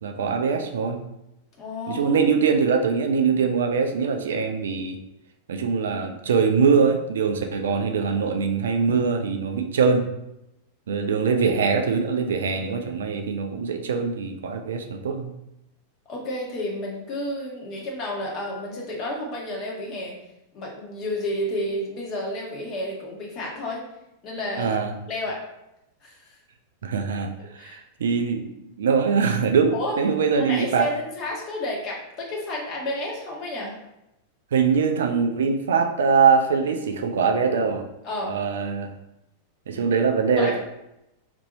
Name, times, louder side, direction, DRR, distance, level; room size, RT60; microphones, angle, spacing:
voice 1, 0.0-1.0 1.9-5.0 5.5-10.1 10.9-15.3 24.6-24.9 26.8-27.3 27.6-28.5 28.8-30.9 34.5-37.8 38.2-38.9 39.7-40.6, right 5 dB, 65° right, 5 dB, 0.3 m, -22 dB
voice 2, 1.6-2.2 16.1-20.1 20.5-23.8 24.2-24.7 25.1-25.4 26.0-26.4 27.6-27.8 29.7-29.9 30.4-33.8 38.0-38.3 40.4-40.6, left 1 dB, 35° left, -2 dB, 1.0 m, -31 dB
2.6 x 2.6 x 4.0 m, 0.87 s
figure-of-eight pair, 90°, 0 cm